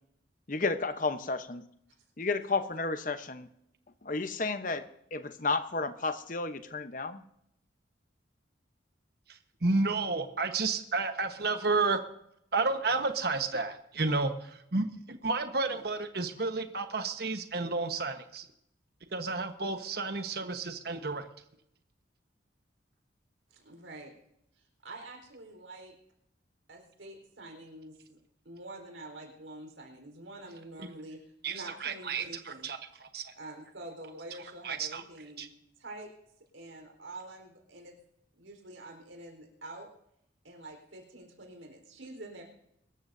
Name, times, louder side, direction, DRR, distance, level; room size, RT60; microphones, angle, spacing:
voice 1, 0.5-1.7 2.2-3.5 4.0-7.2, left 3 dB, 45° left, 0.9 m, -32 dB
voice 2, 9.3-12.0 12.5-18.4 19.1-21.3 30.8-30.9 31.4-33.3 34.6-35.0 35.4-35.5, right 3 dB, 55° right, 1.2 m, -31 dB
voice 3, 23.5-24.1 24.5-25.9 26.7-28.2 28.4-32.7 33.3-35.5 35.8-36.1 36.5-37.9 38.3-39.9 40.4-42.4, right 2 dB, 85° right, 4.2 m, -47 dB
24.0 x 13.5 x 2.7 m
head